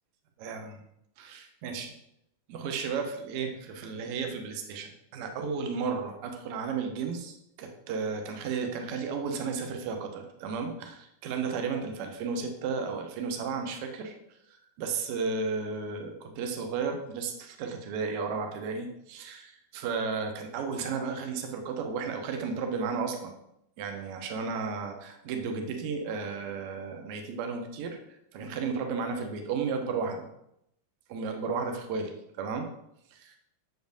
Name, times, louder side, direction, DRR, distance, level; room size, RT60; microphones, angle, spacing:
voice 1, 0.4-0.8 1.2-1.9 2.5-14.1 14.8-23.3 23.8-28.0 28.3-30.3 31.1-32.7 33.1-33.4, right 5 dB, 45° right, 4 dB, 1.0 m, -33 dB
7.7 x 5.1 x 2.7 m, 0.77 s
figure-of-eight pair, 90°, 0 cm